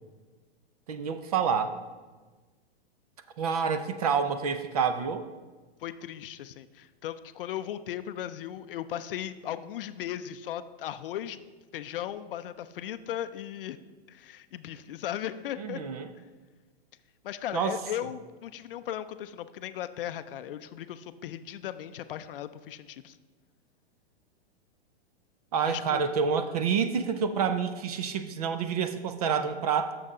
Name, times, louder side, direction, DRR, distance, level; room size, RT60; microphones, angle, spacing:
voice 1, 0.9-1.7 3.4-5.2 15.6-16.1 17.5-17.8 25.5-29.9, right 6 dB, 35° right, 9 dB, 0.4 m, -28 dB
voice 2, 5.8-11.4 11.7-13.8 14.1-15.8 17.2-23.2 25.7-26.0, left 11 dB, 55° left, 12 dB, 0.5 m, -37 dB
6.7 x 6.0 x 5.4 m, 1.3 s
supercardioid pair, 165°, 33 cm